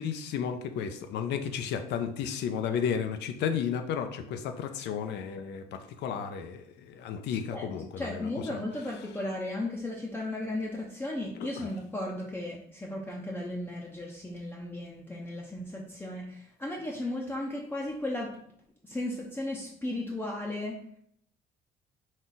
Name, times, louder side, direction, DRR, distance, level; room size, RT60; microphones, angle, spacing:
voice 1, 0.0-8.6 11.6-11.7, left 7 dB, 75° left, 8 dB, 0.5 m, -33 dB
voice 2, 8.0-18.3 18.8-20.8, left 1 dB, 10° left, -3 dB, 0.6 m, -35 dB
4.1 x 2.4 x 3.9 m, 0.68 s
cardioid pair, 95°, 18 cm